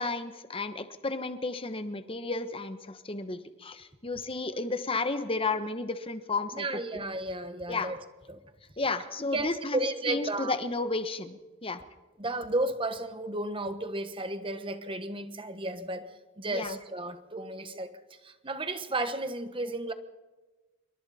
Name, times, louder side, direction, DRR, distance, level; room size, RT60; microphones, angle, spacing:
voice 1, 0.0-6.6 7.7-7.9 8.8-9.8 10.1-11.8 16.5-16.8, left 3 dB, 25° left, 10 dB, 1.1 m, -32 dB
voice 2, 6.5-8.0 8.3-8.4 9.3-10.6 12.2-16.0 16.4-17.9 18.2-19.9, right 2 dB, 25° right, 10 dB, 1.3 m, -33 dB
26.5 x 23.5 x 4.3 m, 1.2 s
head